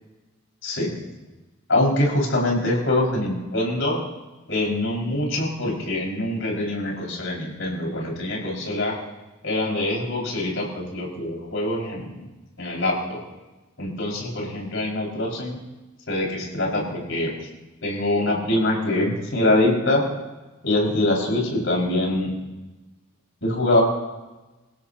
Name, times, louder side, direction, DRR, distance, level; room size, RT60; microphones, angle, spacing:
voice 1, 1.7-4.0 4.5-9.0 9.4-12.1 12.6-13.2 13.8-15.6 16.1-17.3 17.8-20.0 20.6-22.3 23.4-23.8, left 1 dB, 60° left, -2 dB, 5.9 m, -24 dB
27.5 x 16.5 x 3.0 m, 1.1 s
head